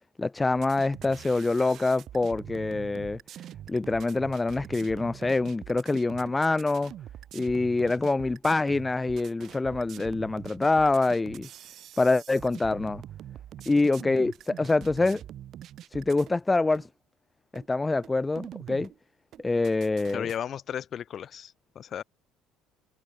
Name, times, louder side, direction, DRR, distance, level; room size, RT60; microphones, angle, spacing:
voice 1, 0.2-3.2 3.7-6.9 7.3-11.5 12.0-13.0 13.7-15.2 15.9-16.9 17.5-18.9 19.4-20.3, left 3 dB, 20° left, 1.0 m, -25 dB
sound 1, 0.5-16.4 16.7-16.9 17.5-17.7 18.0-19.0 19.3-20.4, right 11 dB, 60° right, 2.7 m, -44 dB
voice 2, 20.1-22.0, left 9 dB, 50° left, 1.2 m, -35 dB
supercardioid pair, 70°, 0 cm